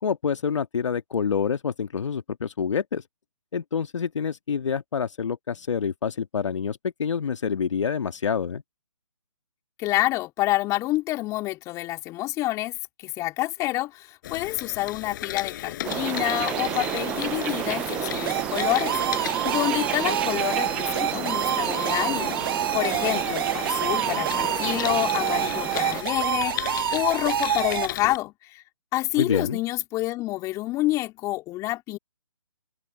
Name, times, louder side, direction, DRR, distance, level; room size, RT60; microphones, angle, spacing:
voice 1, 0.0-3.0 3.5-8.6 29.2-29.6, left 6 dB, 60° left, 1.7 m, -27 dB
voice 2, 9.8-22.4 22.7-28.6 28.9-32.0, left 17 dB, 20° left, 3.6 m, -28 dB
sound 1, 14.2-28.2, left 13 dB, 35° left, 6.1 m, -36 dB
sound 2, 15.8-26.0, right 14 dB, 5° right, 0.3 m, -31 dB
sound 3, 18.3-27.9, right 10 dB, 40° right, 1.0 m, -27 dB
open air
figure-of-eight pair, 145°, 18 cm